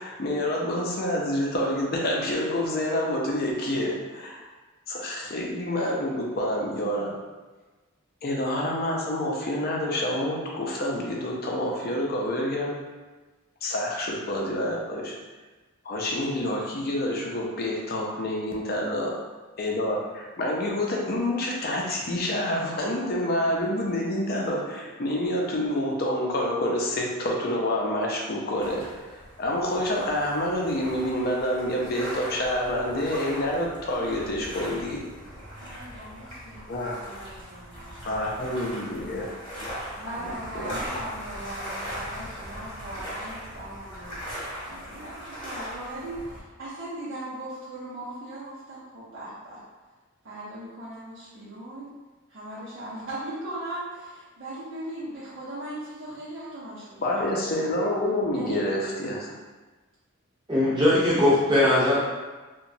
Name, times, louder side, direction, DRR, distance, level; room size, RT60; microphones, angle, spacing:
voice 1, 0.0-4.4 4.9-7.1 8.2-12.7 13.6-15.1 15.8-19.1 19.6-28.8 29.1-35.0 36.7-36.9 38.0-39.3 40.2-40.7 57.0-59.3, left 1 dB, 45° left, -2 dB, 0.5 m, -28 dB
sound 1, 28.6-46.4, equal, 25° left, 0.9 m, -39 dB
voice 2, 35.6-38.5 40.0-44.2 44.6-49.6 50.2-51.9 52.3-57.7 58.3-58.7, right 1 dB, 60° right, -10 dB, 0.6 m, -39 dB
voice 3, 60.5-62.0, left 1 dB, 20° right, -7 dB, 0.7 m, -20 dB
2.9 x 2.2 x 2.6 m, 1.3 s
head